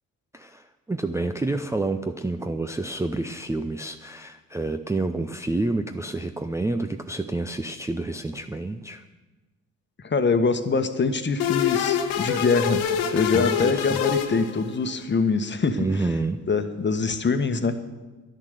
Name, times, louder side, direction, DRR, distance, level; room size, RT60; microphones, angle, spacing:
voice 1, 0.3-9.0 13.3-14.0 15.8-16.4, right 2 dB, 5° right, 8 dB, 0.5 m, -29 dB
voice 2, 10.0-15.8 16.5-17.8, left 4 dB, 25° left, 9 dB, 1.3 m, -24 dB
sound 1, 11.4-15.0, left 9 dB, 65° left, 1.2 m, -25 dB
11.5 x 10.5 x 6.6 m, 1.2 s
hypercardioid pair, 50°, 41 cm